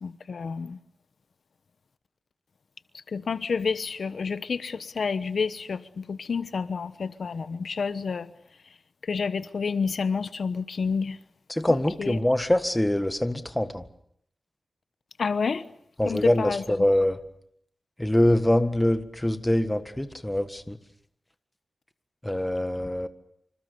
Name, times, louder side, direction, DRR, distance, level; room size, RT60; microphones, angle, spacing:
voice 1, 0.0-0.8 2.9-8.3 9.0-11.2 11.6-12.2 15.2-15.6 16.0-16.9, left 5 dB, 75° left, 13 dB, 1.0 m, -29 dB
voice 2, 11.5-13.8 16.0-17.2 18.0-20.8 22.2-23.1, left 1 dB, 10° left, 9 dB, 1.7 m, -24 dB
26.5 x 26.5 x 6.9 m, 0.69 s
wide cardioid pair, 120°, 0 cm